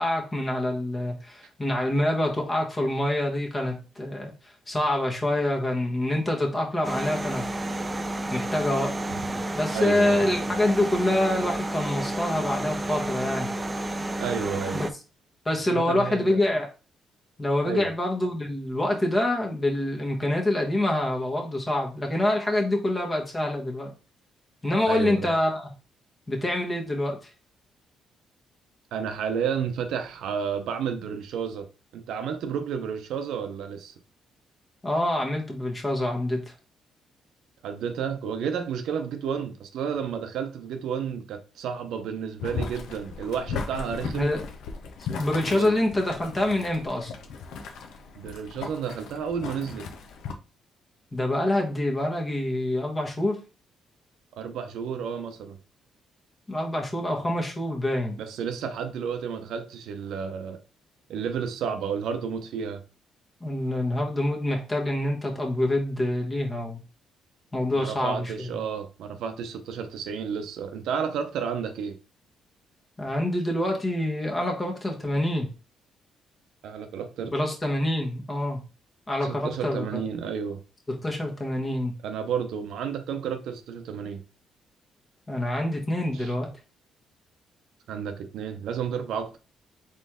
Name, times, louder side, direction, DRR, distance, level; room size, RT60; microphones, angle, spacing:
voice 1, 0.0-7.5 8.3-9.0 9.5-13.5 14.7-14.9 15.4-16.7 17.4-23.9 24.6-25.7 26.3-27.2 34.8-36.5 44.1-44.4 45.1-47.1 51.1-53.4 56.5-58.2 63.4-66.8 67.5-68.5 73.0-75.5 77.2-78.6 79.1-79.9 80.9-81.9 85.3-86.5, left 1 dB, 25° left, 1.3 m, -26 dB
sound 1, 6.8-14.9, right 1 dB, 20° right, 0.5 m, -31 dB
voice 2, 9.7-10.3 14.2-14.8 15.7-16.4 17.6-17.9 24.9-25.3 28.9-31.7 31.9-33.9 37.6-44.3 45.5-45.7 48.2-49.9 54.3-55.6 58.2-60.6 61.1-62.8 67.7-71.9 76.6-77.3 79.2-80.6 82.0-84.2 86.1-86.3 87.9-89.4, right 7 dB, 80° right, 0.6 m, -31 dB
Boiling, 42.4-50.3, left 5 dB, 85° left, 0.6 m, -37 dB
4.1 x 3.1 x 3.6 m
cardioid pair, 90°, 0 cm